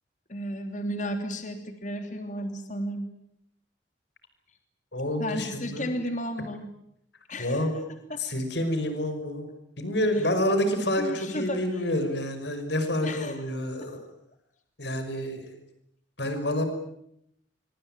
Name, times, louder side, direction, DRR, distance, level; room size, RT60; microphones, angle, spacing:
voice 1, 0.3-3.1 5.2-6.7 7.3-7.8 8.1-8.2 11.0-11.6 13.0-13.4, equal, 40° left, 6 dB, 3.2 m, -33 dB
voice 2, 4.9-5.9 7.4-7.7 8.2-9.5 9.8-14.0 14.8-15.5 16.2-16.6, left 1 dB, 65° left, 8 dB, 5.7 m, -28 dB
25.5 x 24.5 x 9.1 m, 0.76 s
head